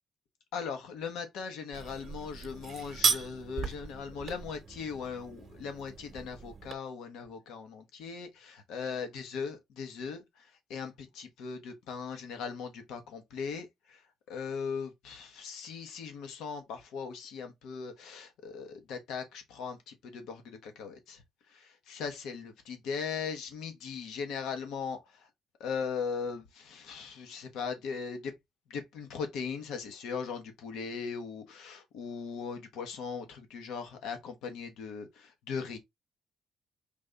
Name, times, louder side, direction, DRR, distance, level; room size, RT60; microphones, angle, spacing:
voice 1, 0.5-10.2 10.7-14.0 14.3-21.2 21.5-25.3 25.6-28.3 28.7-35.8, left 6 dB, 90° left, 1.1 m, -39 dB
sound 1, 1.7-6.7, right 6 dB, 50° right, 0.8 m, -35 dB
5.2 x 2.6 x 3.3 m
cardioid pair, 90°, 0 cm